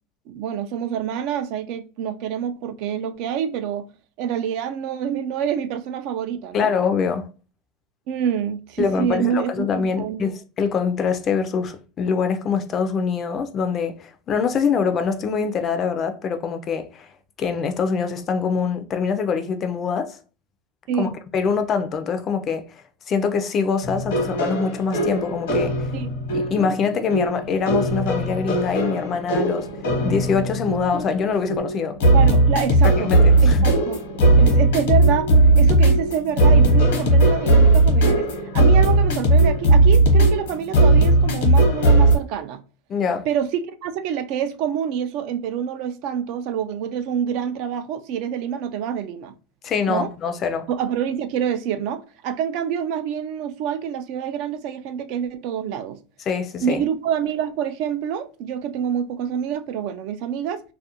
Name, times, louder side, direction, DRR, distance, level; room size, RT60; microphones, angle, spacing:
voice 1, 0.3-3.8 4.2-6.7 8.1-10.2 20.9-21.1 25.9-26.1 32.1-33.1 33.4-34.0 34.4-35.3 35.6-42.6 43.3-49.3 49.9-50.1 50.7-56.0 56.6-60.6, right 8 dB, 55° right, 0.3 m, -27 dB
voice 2, 6.5-7.3 8.8-17.1 17.4-20.2 21.0-22.8 23.1-25.9 26.3-29.7 30.0-32.0 32.8-33.7 42.9-43.3 49.6-50.7 56.3-56.8, left 5 dB, 30° left, 0.3 m, -24 dB
sound 1, 23.8-42.2, right 2 dB, 85° left, 0.9 m, -18 dB
2.4 x 2.1 x 2.7 m
supercardioid pair, 145°, 0 cm